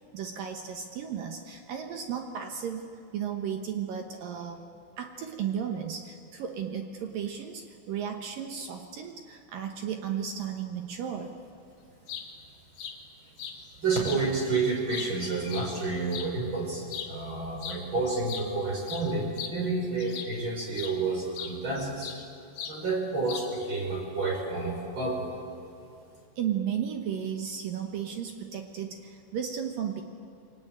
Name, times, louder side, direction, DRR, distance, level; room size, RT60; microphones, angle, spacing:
voice 1, 0.1-4.6 5.0-11.4 26.4-30.0, right 8 dB, 70° right, 5 dB, 2.1 m, -34 dB
sound 1, 11.9-12.3 12.8-13.0 13.4-13.6 14.0-14.2 14.7-16.3 16.8-17.1 17.6-17.8 18.1-20.4 20.8-21.0 21.4-22.3 22.6-22.8 23.3-23.7, left 8 dB, 65° left, 4.0 m, -39 dB
voice 2, 13.8-22.1 22.7-25.3, right 3 dB, 25° right, 0 dB, 5.2 m, -30 dB
28.5 x 23.5 x 8.9 m, 2.6 s
omnidirectional pair, 5.6 m